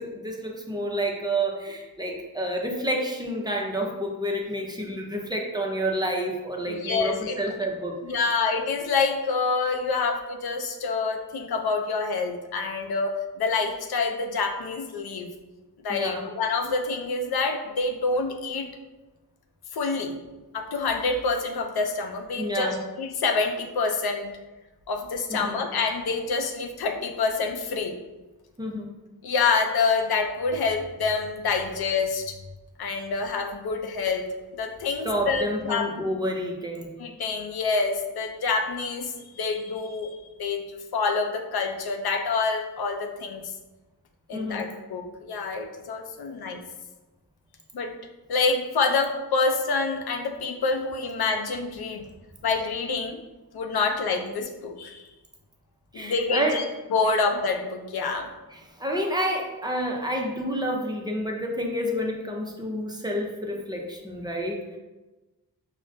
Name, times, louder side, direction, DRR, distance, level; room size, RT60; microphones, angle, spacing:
voice 1, 0.0-7.9 15.9-16.2 22.4-22.8 25.3-25.6 28.6-28.9 35.0-36.9 44.3-44.7 55.9-56.6 58.5-64.6, equal, 10° right, 0 dB, 0.5 m, -29 dB
voice 2, 6.6-7.4 8.1-15.3 15.8-18.7 19.7-20.2 20.5-24.3 24.9-27.9 29.2-32.4 32.8-34.3 34.6-36.0 37.0-40.1 40.4-43.4 44.3-46.6 47.7-47.9 48.3-52.1 52.4-53.2 53.5-55.0 55.9-56.6 56.9-58.3, left 4 dB, 75° left, 4 dB, 0.5 m, -27 dB
4.9 x 2.1 x 2.5 m, 1.1 s
wide cardioid pair, 95°, 38 cm